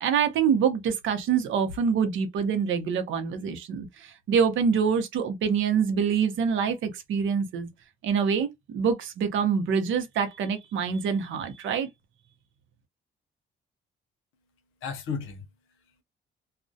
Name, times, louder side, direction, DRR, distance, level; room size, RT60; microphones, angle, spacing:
voice 1, 0.0-7.7 8.0-11.9, right 6 dB, 75° right, 0.7 m, -25 dB
voice 2, 14.3-16.0, left 6 dB, 85° left, 0.7 m, -37 dB
2.3 x 2.1 x 2.6 m
cardioid pair, 90°, 20 cm